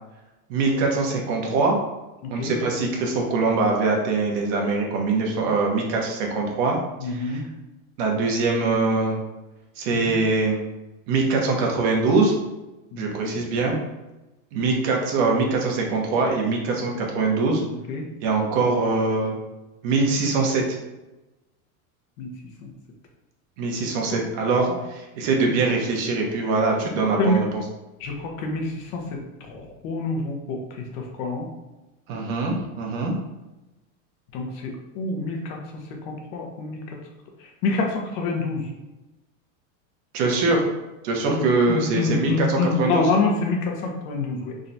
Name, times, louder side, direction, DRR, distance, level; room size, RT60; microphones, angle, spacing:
voice 1, 0.5-1.8 2.3-7.4 8.0-9.2 9.8-10.6 11.1-12.3 13.0-13.8 14.5-17.6 18.2-19.4 19.8-20.6 23.6-27.6 32.1-33.1 40.1-40.6 41.0-43.1, right 3 dB, 65° right, 0 dB, 1.1 m, -23 dB
voice 2, 2.2-2.5 7.0-7.4 9.9-10.1 12.9-13.4 17.7-18.0 22.2-22.3 22.6-22.7 24.7-24.8 27.2-27.4 28.0-30.6 30.9-31.5 34.3-35.6 36.1-36.8 37.6-38.7 41.3-41.4 41.7-44.5, left 3 dB, 60° left, 2 dB, 1.0 m, -27 dB
3.7 x 3.3 x 2.7 m, 1.0 s
supercardioid pair, 135°, 40 cm